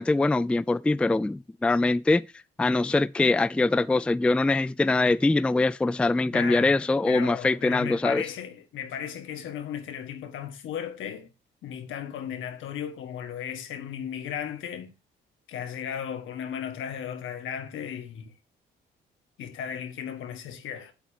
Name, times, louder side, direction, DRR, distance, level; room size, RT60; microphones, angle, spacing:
voice 1, 0.0-2.3 2.6-8.2, left 2 dB, 5° left, 0.3 m, -23 dB
voice 2, 6.3-6.8 7.0-11.3 11.6-14.9 15.5-18.3 19.4-20.9, left 8 dB, 80° left, 1.6 m, -35 dB
8.6 x 8.0 x 2.8 m
cardioid pair, 90°, 20 cm